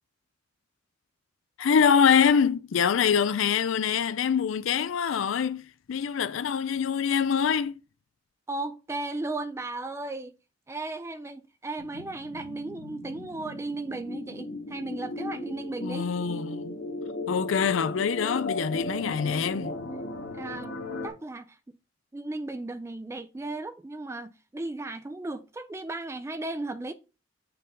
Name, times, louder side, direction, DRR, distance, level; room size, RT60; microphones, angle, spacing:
voice 1, 1.6-7.7 15.8-16.8 17.3-19.7, left 7 dB, 85° left, 0.4 m, -24 dB
voice 2, 8.5-10.3 10.7-16.1 20.3-20.8 21.0-21.6 22.1-26.9, right 2 dB, 15° right, 0.3 m, -35 dB
sound 1, 11.8-21.1, left 1 dB, 55° left, 1.6 m, -36 dB
6.7 x 3.7 x 5.2 m
head